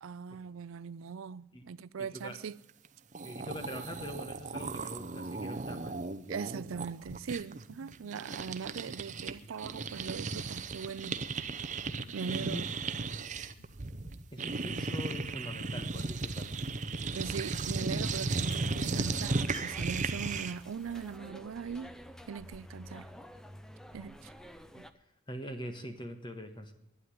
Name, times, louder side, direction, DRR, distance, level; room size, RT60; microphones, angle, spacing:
voice 1, 0.0-2.6 6.3-11.2 12.1-12.7 17.1-21.9 22.3-23.1 23.9-24.3 24.7-24.9, right 6 dB, 75° right, 0.4 m, -40 dB
voice 2, 2.0-2.4 3.2-6.1 12.3-12.6 14.3-16.5 25.3-26.7, equal, 20° left, 1.5 m, -43 dB
sound 1, 2.8-2.9 3.1-9.3 9.6-20.7, right 3 dB, 35° right, 0.7 m, -36 dB
sound 2, 6.7-17.9, left 1 dB, 75° left, 1.5 m, -59 dB
sound 3, 18.4-24.9, equal, 5° left, 0.6 m, -49 dB
12.0 x 9.5 x 9.3 m
head